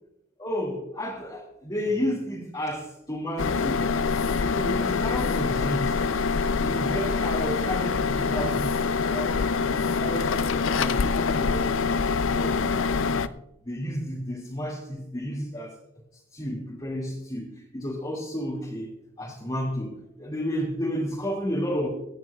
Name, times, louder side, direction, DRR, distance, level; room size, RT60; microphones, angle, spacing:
voice 1, 0.4-4.0 4.4-6.0 6.6-8.8 9.1-9.5 9.9-12.9 13.6-15.7 16.3-17.5 17.7-21.9, equal, 20° left, -6 dB, 2.2 m, -32 dB
sound 1, 3.4-13.3, left 5 dB, 75° left, 0.5 m, -25 dB
23.5 x 9.1 x 2.3 m, 0.84 s
head